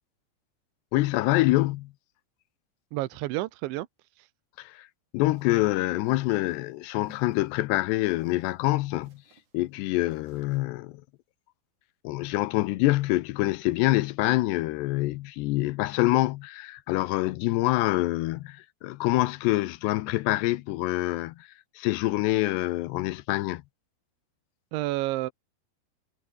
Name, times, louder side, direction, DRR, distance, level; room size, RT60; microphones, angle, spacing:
voice 1, 0.9-1.9 4.6-4.9 5.1-9.2 9.5-11.0 12.0-21.5 21.8-23.6, left 18 dB, 80° left, 2.7 m, -26 dB
voice 2, 2.9-3.9 4.2-4.3 24.7-25.3, right 17 dB, 80° right, 3.2 m, -30 dB
sound 1, 5.2-10.7, right 5 dB, 40° right, 5.8 m, -62 dB
omnidirectional pair, 5.3 m